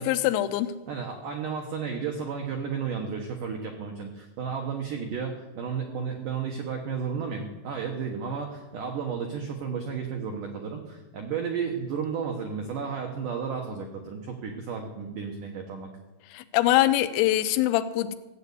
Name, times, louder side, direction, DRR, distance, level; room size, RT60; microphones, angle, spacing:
voice 1, 0.0-0.7 16.3-18.2, left 14 dB, 90° left, 10 dB, 3.5 m, -23 dB
voice 2, 0.9-15.9, right 6 dB, 85° right, 3 dB, 1.8 m, -33 dB
16.0 x 8.5 x 8.3 m, 1.1 s
omnidirectional pair, 5.8 m